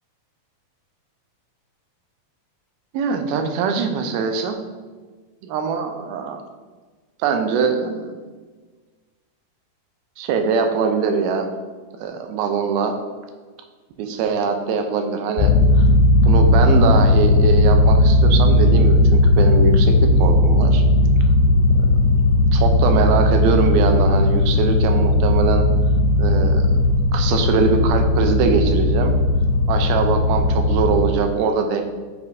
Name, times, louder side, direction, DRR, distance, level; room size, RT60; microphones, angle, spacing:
voice 1, 2.9-4.6 5.4-6.4 7.2-8.1 10.2-11.5 12.0-12.9 14.0-15.5 15.8-15.9 16.2-20.8 22.5-25.7 26.2-26.7 27.1-29.2 29.7-31.8, right 5 dB, 80° right, 5 dB, 2.5 m, -22 dB
sound 1, 15.4-31.1, left 2 dB, 90° left, 2.6 m, -16 dB
8.3 x 6.9 x 2.7 m, 1.4 s
omnidirectional pair, 4.4 m